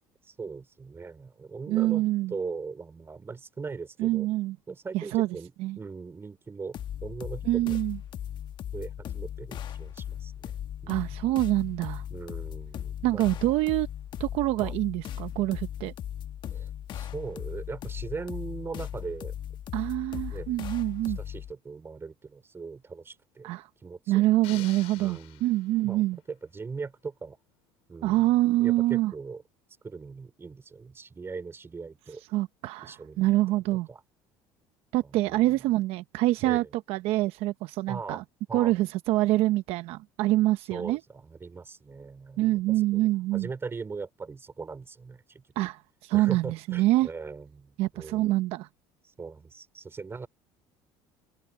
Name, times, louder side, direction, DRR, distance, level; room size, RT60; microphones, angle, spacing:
voice 1, 0.3-2.0 2.3-4.3 4.7-7.8 8.7-10.6 10.8-11.2 12.1-13.5 14.6-14.7 16.5-19.3 20.3-20.5 21.0-23.5 23.8-24.2 24.5-24.6 25.0-25.4 25.8-27.4 27.9-28.3 28.6-29.4 29.8-32.2 32.8-33.4 33.7-34.0 35.0-35.6 36.4-36.7 37.9-38.2 38.5-38.7 40.7-45.4 46.1-48.3 49.2-50.3, right 4 dB, 20° right, 3.7 m, -40 dB
voice 2, 1.7-2.3 4.0-4.6 4.9-5.3 5.6-5.8 7.4-8.0 10.9-12.0 13.0-13.9 14.2-15.9 19.7-21.2 23.4-23.7 24.1-26.2 28.0-29.1 32.3-33.9 34.9-38.2 38.5-41.0 42.4-43.5 45.6-47.1 47.8-48.7, right 17 dB, 70° right, 0.9 m, -26 dB
sound 1, 6.7-21.5, left 10 dB, 50° left, 1.3 m, -38 dB
sound 2, 24.4-26.0, left 21 dB, 75° left, 4.1 m, -47 dB
open air
supercardioid pair, 105°, 11 cm